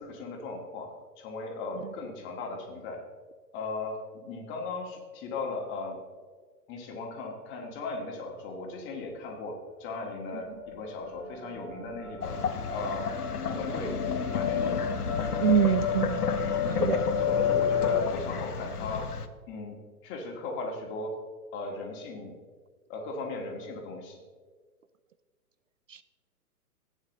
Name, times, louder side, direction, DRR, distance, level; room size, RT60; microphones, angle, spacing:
voice 1, 0.0-3.0 3.5-6.0 6.7-12.4 12.7-13.1 13.5-14.8 16.6-16.9 17.2-19.1 19.5-19.8 20.0-21.1 21.5-22.4 22.9-24.2, left 3 dB, 25° left, 1 dB, 2.1 m, -37 dB
sound 1, 10.0-18.0, left 7 dB, 5° left, 2.8 m, -32 dB
sound 2, 12.2-19.3, left 6 dB, 75° left, 1.1 m, -32 dB
voice 2, 15.4-16.3 16.8-17.1 25.9-26.0, right 8 dB, 55° right, 14 dB, 0.5 m, -26 dB
15.0 x 9.2 x 3.2 m, 1.5 s
figure-of-eight pair, 125°, 47 cm